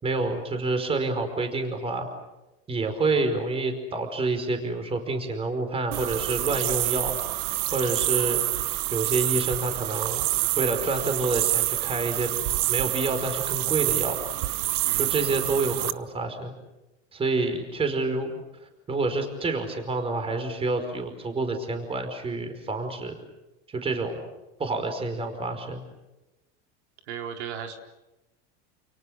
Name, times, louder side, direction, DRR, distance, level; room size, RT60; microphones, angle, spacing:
voice 1, 0.0-2.1 2.7-7.2 7.7-8.4 8.9-10.2 10.6-12.3 12.7-14.2 15.0-16.5 17.1-18.3 18.9-23.2 23.7-24.2 24.6-25.8, right 3 dB, 15° right, 7 dB, 5.1 m, -28 dB
sound 1, 5.9-15.9, right 18 dB, 55° right, 1.2 m, -27 dB
voice 2, 14.8-15.2 27.1-27.8, right 8 dB, 80° right, 4 dB, 4.4 m, -36 dB
30.0 x 29.5 x 6.6 m, 1.0 s
supercardioid pair, 150°, 34 cm